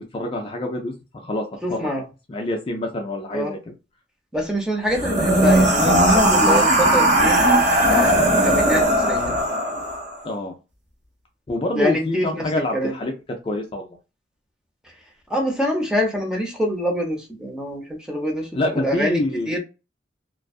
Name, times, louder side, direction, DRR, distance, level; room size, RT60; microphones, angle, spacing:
voice 1, 0.0-1.4 1.7-1.9 2.3-3.6 10.2-10.5 11.5-13.1 13.4-13.9 18.5-19.6, left 1 dB, 30° left, 2 dB, 0.3 m, -26 dB
voice 2, 1.6-2.0 3.3-3.5 4.3-7.4 7.8-9.3 11.8-12.9 15.3-19.6, equal, 5° right, 0 dB, 0.6 m, -25 dB
sound 1, 4.9-10.1, right 1 dB, 65° right, 1.1 m, -17 dB
2.5 x 2.3 x 2.3 m, 0.29 s
head